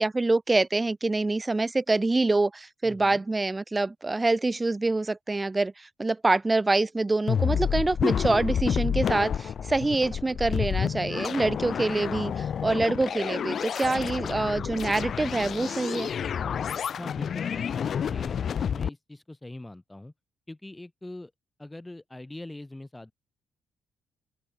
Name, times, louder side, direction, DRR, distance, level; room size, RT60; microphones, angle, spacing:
voice 1, 0.0-16.1, right 2 dB, 20° right, 2.6 m, -26 dB
voice 2, 2.8-3.2 17.0-20.1 20.5-21.3 21.6-23.1, left 2 dB, 10° left, 4.9 m, -42 dB
sound 1, 7.3-18.9, left 8 dB, 55° left, 1.0 m, -29 dB
open air
cardioid pair, 90°, 0 cm